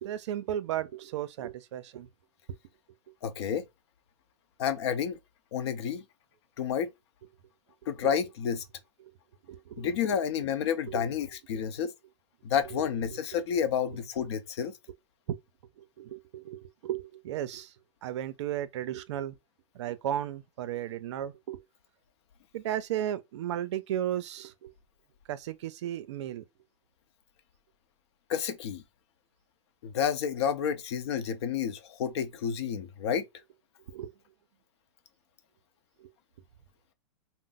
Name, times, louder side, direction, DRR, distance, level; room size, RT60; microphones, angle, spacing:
voice 1, 0.0-2.1 8.0-8.1 9.0-9.1 9.5-10.2 10.9-11.0 11.5-11.6 12.7-12.8 13.1-13.2 13.6-13.7 15.3-15.4 15.8-17.7 18.0-19.4 19.7-21.6 22.5-24.7 25.3-26.4 33.9-34.1 36.0-36.1, right 11 dB, 60° right, 0.4 m, -35 dB
voice 2, 3.2-3.7 4.6-5.2 5.5-6.0 6.6-6.9 7.9-8.6 9.8-11.9 12.4-14.7 28.3-28.8 29.8-33.3, left 8 dB, 55° left, 0.6 m, -30 dB
2.5 x 2.0 x 3.8 m
hypercardioid pair, 155°, 17 cm